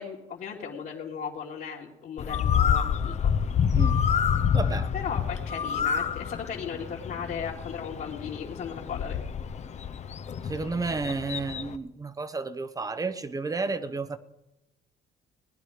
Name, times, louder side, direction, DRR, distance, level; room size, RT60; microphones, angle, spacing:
voice 1, 0.0-3.3 4.9-9.2, left 7 dB, 60° left, -6 dB, 2.5 m, -36 dB
Bird, 2.2-11.8, left 7 dB, 40° left, 0.8 m, -28 dB
voice 2, 4.5-4.9 10.4-14.2, right 3 dB, 20° right, 13 dB, 0.9 m, -31 dB
19.5 x 10.5 x 5.1 m, 0.97 s
cardioid pair, 110°, 17 cm